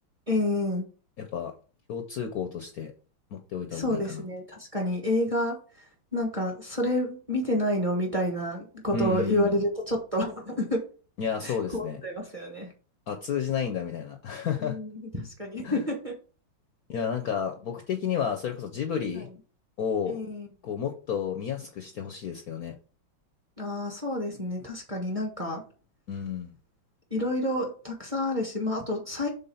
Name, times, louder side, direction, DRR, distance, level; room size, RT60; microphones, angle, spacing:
voice 1, 0.3-0.9 3.7-5.6 6.1-10.8 11.4-12.7 14.6-16.1 19.1-19.2 20.1-20.5 23.6-25.6 27.1-29.3, left 1 dB, 20° right, 1 dB, 1.1 m, -29 dB
voice 2, 1.2-1.5 1.9-2.9 3.3-4.2 8.9-9.6 11.2-12.0 13.1-14.8 15.6-15.8 16.9-19.3 19.8-20.2 20.6-22.7 26.1-26.5, left 7 dB, 65° left, 5 dB, 1.0 m, -31 dB
5.4 x 3.8 x 5.6 m, 0.38 s
omnidirectional pair, 2.2 m